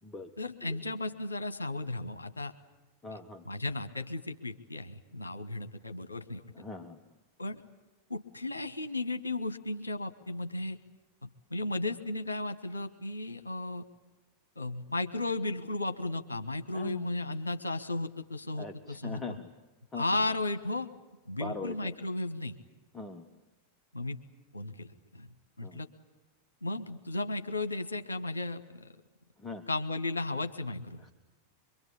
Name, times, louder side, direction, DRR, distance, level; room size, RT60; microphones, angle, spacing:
voice 1, 0.4-2.5 3.5-6.4 7.4-7.6 8.1-10.8 11.2-13.8 14.6-19.2 19.9-20.9 21.3-22.6 23.9-24.2 24.5-25.3 25.6-25.9 26.6-28.9 29.7-31.1, left 2 dB, 80° left, 9 dB, 1.3 m, -35 dB
voice 2, 3.0-3.5 6.5-7.0 16.7-17.1 18.5-19.5 19.9-20.2 21.4-21.9 22.9-23.3 25.6-25.8 29.4-29.7 31.0-31.1, left 3 dB, 15° left, 5 dB, 1.3 m, -41 dB
24.5 x 23.5 x 8.6 m, 1.1 s
figure-of-eight pair, 90°, 0 cm